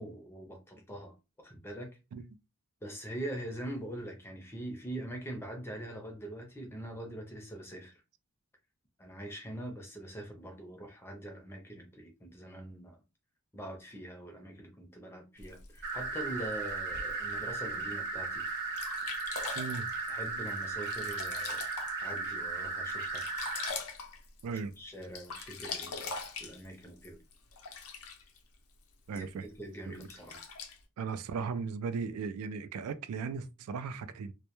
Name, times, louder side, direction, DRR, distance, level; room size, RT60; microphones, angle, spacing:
voice 1, 0.0-2.0 2.8-8.0 9.0-13.0 13.5-18.5 20.1-21.6 22.0-23.3 24.5-27.2 29.1-30.4, right 1 dB, 10° left, 0.5 m, -43 dB
Sink (filling or washing), 15.4-17.4 18.0-18.1 18.5-18.6 18.8-22.3 22.6-24.7 25.0-28.4 29.2-29.3 29.9-30.8, left 5 dB, 80° left, 0.5 m, -42 dB
sound 1, 15.8-23.7, right 3 dB, 50° right, 0.9 m, -36 dB
voice 2, 19.6-19.9 24.4-24.7 25.3-25.5 29.1-29.5 29.9-30.1 31.0-34.3, right 5 dB, 90° right, 0.3 m, -37 dB
2.1 x 2.1 x 2.9 m
head